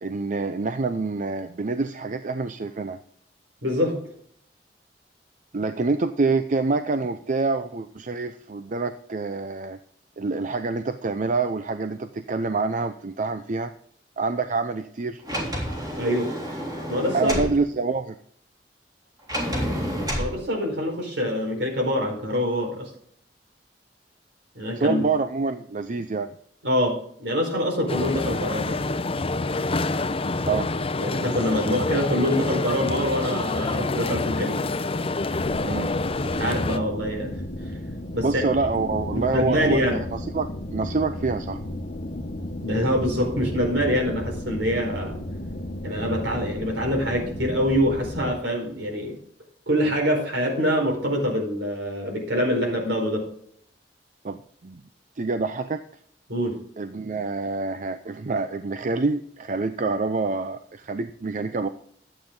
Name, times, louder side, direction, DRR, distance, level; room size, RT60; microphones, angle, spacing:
voice 1, 0.0-3.0 5.5-9.8 10.2-13.7 14.2-15.2 17.1-18.1 24.8-26.3 30.5-30.7 35.6-35.9 38.2-41.6 54.2-54.8 55.2-55.8 56.8-61.7, right 3 dB, 45° right, 9 dB, 0.6 m, -26 dB
voice 2, 3.6-4.0 16.0-16.3 16.9-17.4 20.1-22.9 24.5-25.0 26.6-28.8 31.0-34.6 36.2-37.3 38.1-38.4 39.1-40.0 42.6-45.2 45.8-49.2 49.7-53.2 56.3-56.6, equal, 80° right, 1 dB, 4.7 m, -25 dB
Sliding door, 15.2-17.5 19.3-20.3, equal, 25° right, 3.3 m, -29 dB
sound 1, 27.9-36.8, left 2 dB, 35° left, 0.7 m, -27 dB
background noise wind stereo, 35.4-48.4, left 1 dB, 50° left, 1.2 m, -34 dB
12.0 x 8.8 x 3.9 m, 0.63 s
head